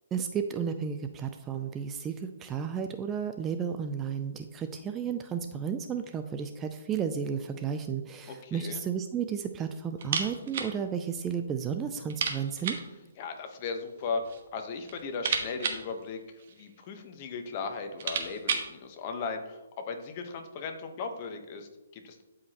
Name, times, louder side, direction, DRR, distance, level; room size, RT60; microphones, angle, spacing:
voice 1, 0.1-12.8, right 7 dB, 15° right, 7 dB, 0.4 m, -33 dB
voice 2, 8.3-8.8 13.2-14.2 14.5-16.2 16.5-19.6 19.8-22.2, left 4 dB, 35° left, 5 dB, 1.1 m, -37 dB
sound 1, 10.0-10.8 11.0-11.1 11.5-11.6 12.1-12.9 13.9-14.5 14.8-16.8 17.5-17.6 17.8-18.8, right 6 dB, 50° right, 1.3 m, -33 dB
12.0 x 4.9 x 3.0 m, 1.1 s
hypercardioid pair, 150°, 0 cm